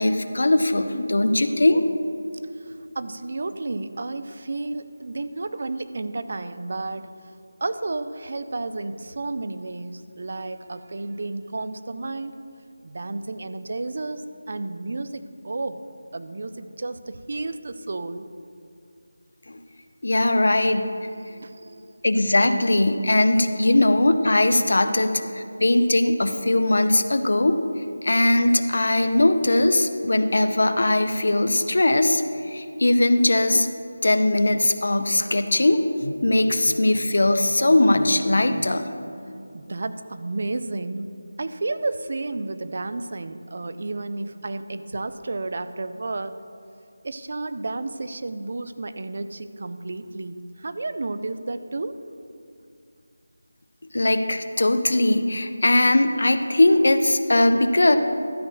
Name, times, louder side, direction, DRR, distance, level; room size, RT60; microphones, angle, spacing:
voice 1, 0.0-1.9 19.5-19.6 20.0-20.9 22.0-27.6 28.0-32.2 32.5-33.7 34.0-38.9 53.9-58.0, left 1 dB, 60° left, 9 dB, 0.6 m, -20 dB
voice 2, 2.7-7.1 7.6-12.3 12.8-14.2 14.5-15.8 16.1-18.3 21.1-21.9 39.5-41.1 41.4-46.3 47.0-52.0, right 2 dB, 35° right, 12 dB, 0.3 m, -32 dB
12.5 x 4.6 x 6.5 m, 2.5 s
figure-of-eight pair, 180°, 0 cm